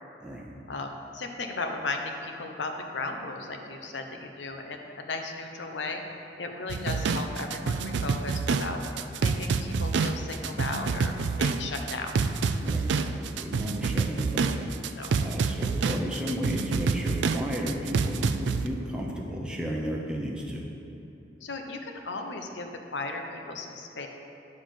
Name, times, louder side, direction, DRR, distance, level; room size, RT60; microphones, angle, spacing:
voice 1, 0.7-12.1 14.9-15.2 21.4-24.1, left 3 dB, 80° left, 4 dB, 0.8 m, -36 dB
sound 1, 6.7-18.7, right 4 dB, 75° right, 0.3 m, -27 dB
voice 2, 12.6-20.7, equal, 5° right, -3 dB, 0.8 m, -34 dB
9.9 x 4.1 x 6.2 m, 2.8 s
head